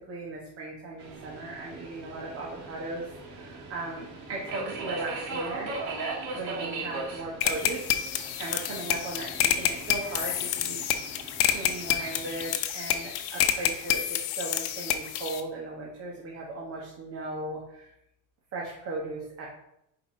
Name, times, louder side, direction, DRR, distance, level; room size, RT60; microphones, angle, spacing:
voice 1, 0.0-5.7 6.3-7.9 8.1-10.8 11.1-17.9 18.5-19.5, right 2 dB, 35° right, -2 dB, 1.1 m, -37 dB
Subway metro underground, 1.0-12.5, right 3 dB, 50° right, 1.6 m, -39 dB
sound 1, 7.4-15.4, left 11 dB, 80° left, 0.7 m, -28 dB
4.8 x 3.7 x 5.2 m, 0.81 s
cardioid pair, 150°, 39 cm